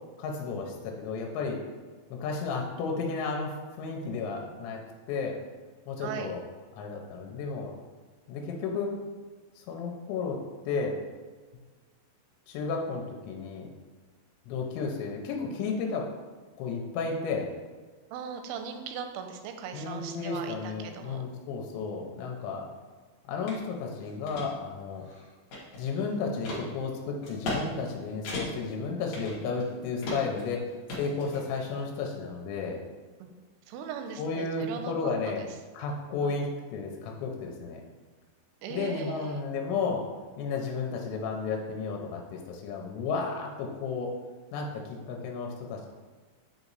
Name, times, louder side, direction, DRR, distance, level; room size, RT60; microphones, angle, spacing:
voice 1, 0.2-1.6 2.1-4.8 5.1-5.4 5.9-6.4 6.8-7.7 8.3-9.0 9.6-11.0 12.5-13.7 14.5-16.1 16.6-17.5 19.7-22.7 23.3-25.1 25.8-32.8 34.2-35.4 35.7-37.8 38.7-40.1 40.4-44.1 44.5-45.9, left 4 dB, 90° left, 1 dB, 2.9 m, -33 dB
voice 2, 6.0-6.3 18.1-21.2 33.2-33.3 33.7-34.9 35.4-35.5 36.2-36.4 38.6-39.4, right 7 dB, 90° right, 6 dB, 3.0 m, -39 dB
sound 1, 23.5-23.6 24.0-24.5 25.0-25.9 26.4-26.6 27.2-27.6 27.9-28.0 28.2-28.7 29.1-29.7 30.0-30.4 30.9-31.7, left 2 dB, 65° left, 1.7 m, -36 dB
8.3 x 3.0 x 4.0 m, 1.4 s
omnidirectional pair, 5.2 m